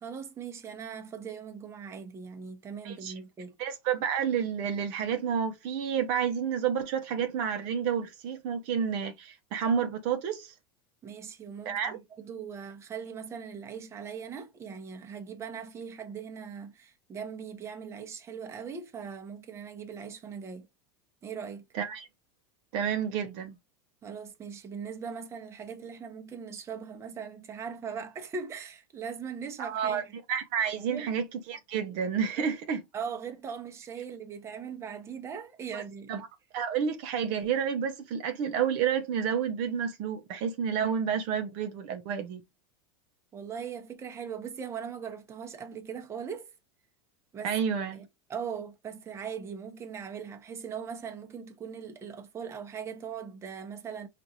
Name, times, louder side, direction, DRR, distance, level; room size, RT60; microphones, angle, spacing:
voice 1, 0.0-3.5 11.0-20.7 21.2-21.7 24.0-30.1 30.9-31.1 32.4-32.5 32.9-36.1 43.3-46.5 47.3-47.5 47.9-54.1, right 6 dB, 20° right, 0.8 m, -40 dB
voice 2, 3.6-10.5 11.6-12.0 21.7-22.1 22.7-23.6 29.6-30.0 30.3-32.8 35.7-35.8 36.1-36.3 36.5-42.4 47.4-48.0, right 7 dB, 55° right, 0.6 m, -30 dB
4.5 x 2.5 x 2.7 m
supercardioid pair, 130°, 13 cm